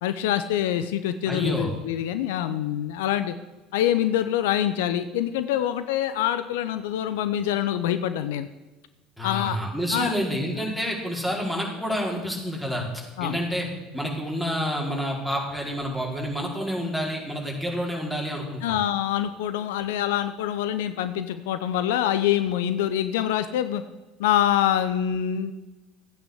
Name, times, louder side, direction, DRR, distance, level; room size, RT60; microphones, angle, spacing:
voice 1, 0.0-3.4 3.7-8.5 9.2-9.6 9.9-10.1 13.2-13.4 18.6-23.8 24.2-25.5, left 11 dB, 70° left, 11 dB, 0.7 m, -25 dB
voice 2, 1.3-1.7 9.2-13.7 13.9-18.8, equal, ahead, -2 dB, 4.8 m, -29 dB
14.0 x 9.0 x 8.0 m, 1.1 s
hypercardioid pair, 70°, 0 cm